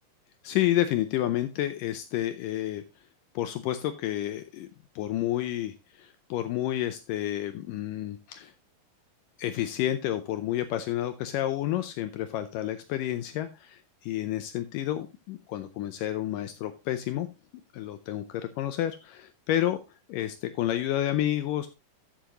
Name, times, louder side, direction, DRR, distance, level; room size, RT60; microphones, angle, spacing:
voice 1, 0.4-2.8 3.4-4.7 5.0-8.5 9.4-17.3 17.7-19.8 20.1-21.7, left 13 dB, 80° left, 10 dB, 2.1 m, -30 dB
13.0 x 7.2 x 3.0 m, 0.26 s
omnidirectional pair, 4.3 m